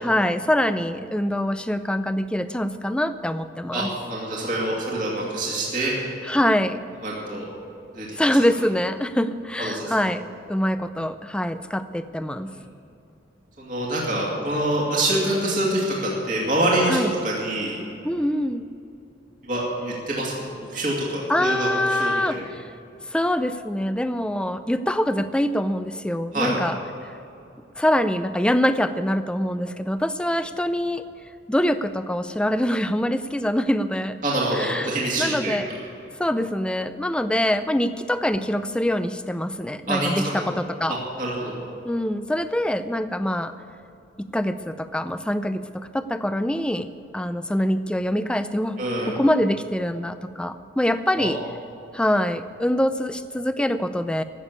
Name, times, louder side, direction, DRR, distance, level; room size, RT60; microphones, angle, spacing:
voice 1, 0.0-3.9 6.2-6.8 8.2-12.5 16.9-17.1 18.0-18.7 21.3-22.6 23.1-26.8 27.8-31.0 31.5-34.2 34.5-34.9 35.2-35.7 36.2-41.0 41.8-43.5 44.2-48.8 49.1-51.4 51.9-54.2, left 1 dB, 5° left, 11 dB, 0.4 m, -24 dB
voice 2, 4.1-5.9 7.0-7.5 7.9-8.2 9.6-9.9 12.5-12.6 13.6-17.8 19.4-22.4 26.3-26.6 34.2-35.6 39.9-40.1 40.4-40.5 40.9-41.6 48.8-49.1 51.1-51.3, right 1 dB, 40° right, -4 dB, 2.5 m, -25 dB
15.5 x 6.8 x 9.7 m, 2.7 s
head